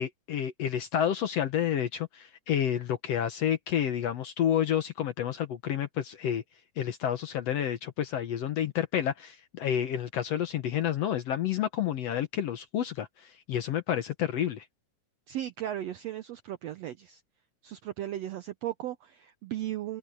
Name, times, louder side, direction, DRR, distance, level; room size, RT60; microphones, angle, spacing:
voice 1, 0.0-6.4 6.8-14.7, left 10 dB, 65° left, 1.7 m, -30 dB
voice 2, 15.3-17.2 17.6-20.0, right 12 dB, 75° right, 1.5 m, -36 dB
open air
omnidirectional pair, 3.8 m